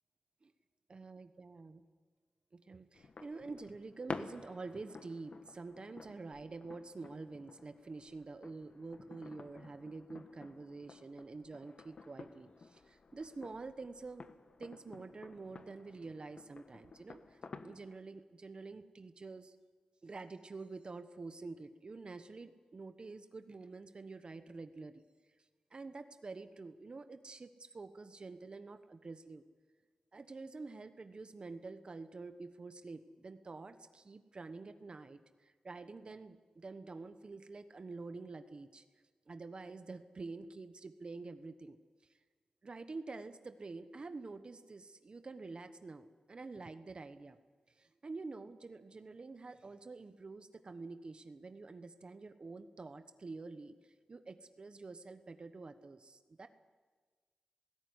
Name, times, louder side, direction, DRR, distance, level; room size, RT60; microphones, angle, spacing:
voice 1, 0.9-1.8 2.5-14.3 14.6-19.6 20.0-25.0 25.7-29.4 30.1-38.8 39.3-42.2 42.6-47.4 47.7-56.5, right 3 dB, 45° right, 9 dB, 1.1 m, -48 dB
sound 1, 2.9-18.0, left 4 dB, 55° left, 1.2 m, -52 dB
19.0 x 16.0 x 9.7 m, 1.4 s
cardioid pair, 70°, 2 cm